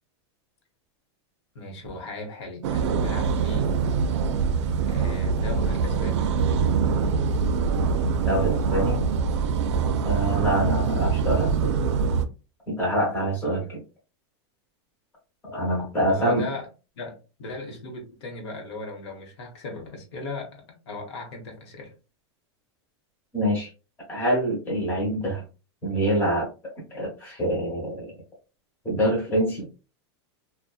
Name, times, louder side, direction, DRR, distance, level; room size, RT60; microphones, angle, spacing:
voice 1, 1.5-3.7 4.9-6.3 16.0-16.7 16.9-21.9, left 2 dB, 70° left, 2 dB, 0.9 m, -37 dB
sound 1, 2.6-12.3, right 5 dB, 80° right, 0.4 m, -24 dB
voice 2, 8.3-9.0 10.0-11.7 12.7-13.8 15.4-16.4 23.3-23.7 24.1-25.4 25.8-28.1 28.8-29.7, equal, 15° left, -4 dB, 1.0 m, -25 dB
2.6 x 2.1 x 2.3 m, 0.32 s
supercardioid pair, 170°, 15 cm